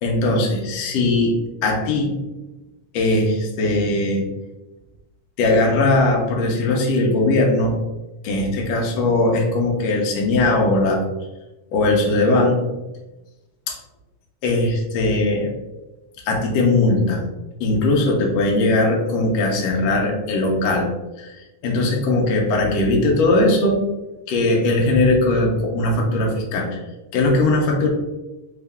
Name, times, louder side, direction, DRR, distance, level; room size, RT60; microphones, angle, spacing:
voice 1, 0.0-2.1 2.9-4.3 5.4-7.7 8.2-11.0 11.7-12.6 13.7-13.8 14.4-15.5 16.3-17.2 17.6-20.9 21.2-23.8 24.3-26.8 27.1-27.9, left 2 dB, 70° left, 0 dB, 1.7 m, -19 dB
4.7 x 2.6 x 3.5 m, 1.1 s
omnidirectional pair, 3.4 m